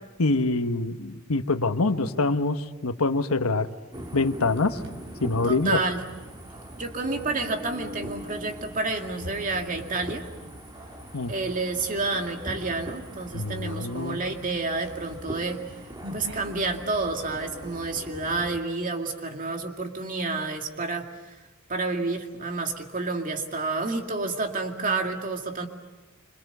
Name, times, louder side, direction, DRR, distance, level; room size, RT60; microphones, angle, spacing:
voice 1, 0.2-3.7 4.1-4.8 5.2-5.8 11.1-11.3 13.3-14.2, left 3 dB, 90° left, 8 dB, 1.2 m, -25 dB
sound 1, 3.9-18.6, right 1 dB, 20° right, 2.3 m, -42 dB
sound 2, 4.6-6.1 7.1-11.3 11.8-12.0 12.4-13.1 13.4-13.5 13.8-16.8, left 1 dB, 60° right, 4.0 m, -46 dB
voice 2, 5.4-6.0 6.8-10.3 11.3-15.6 16.1-21.1 21.7-25.7, right 3 dB, 40° right, 4 dB, 2.3 m, -29 dB
27.0 x 26.0 x 6.9 m, 1.2 s
head